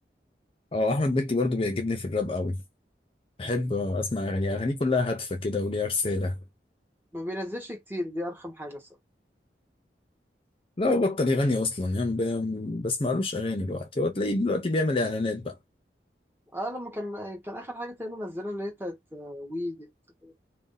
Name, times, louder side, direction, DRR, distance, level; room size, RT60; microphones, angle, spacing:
voice 1, 0.7-2.6 3.4-6.4 10.8-15.5, left 2 dB, 30° left, 0.5 m, -27 dB
voice 2, 7.1-8.9 16.5-19.9 20.2-20.3, left 1 dB, 10° right, 1.0 m, -35 dB
2.6 x 2.1 x 3.8 m
head